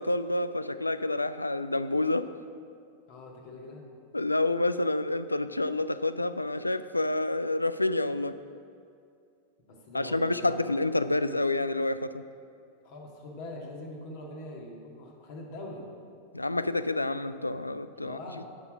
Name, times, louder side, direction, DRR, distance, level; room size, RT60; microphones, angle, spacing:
voice 1, 0.0-2.3 4.1-8.4 9.9-12.2 16.3-18.2, left 2 dB, 85° left, 13 dB, 0.3 m, -28 dB
voice 2, 3.1-3.8 9.7-10.7 12.8-15.9 17.9-18.5, left 1 dB, 50° left, 0 dB, 1.8 m, -43 dB
9.6 x 6.2 x 6.2 m, 2.4 s
figure-of-eight pair, 90°, 0 cm